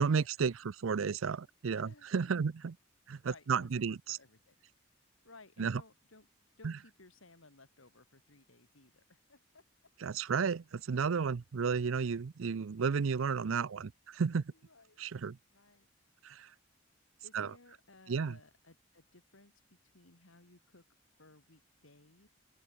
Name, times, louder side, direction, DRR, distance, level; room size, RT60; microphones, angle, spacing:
voice 1, 0.0-2.7 3.1-4.2 5.6-5.8 6.6-6.7 10.0-14.5 15.0-15.4 16.2-16.5 17.3-17.5 18.1-18.4, right 5 dB, 80° right, 0.5 m, -32 dB
voice 2, 1.8-2.1 3.2-4.5 5.2-6.3 6.6-9.6 11.3-11.4 14.5-15.0 15.5-15.9 17.2-20.8 21.2-22.3, left 3 dB, 85° left, 3.0 m, -59 dB
open air
head